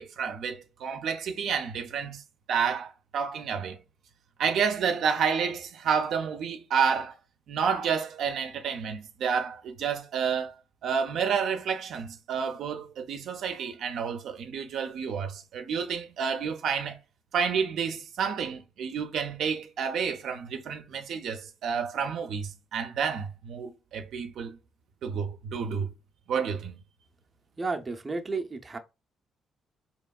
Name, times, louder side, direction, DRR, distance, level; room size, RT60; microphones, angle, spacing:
voice 1, 0.0-2.2 2.5-3.8 4.4-7.1 7.5-17.0 17.3-24.6 25.0-25.9 26.3-26.8, right 6 dB, 75° right, 0.5 m, -30 dB
voice 2, 27.6-28.8, right 3 dB, 25° right, 0.6 m, -32 dB
4.2 x 2.9 x 2.3 m
cardioid pair, 90°, 0 cm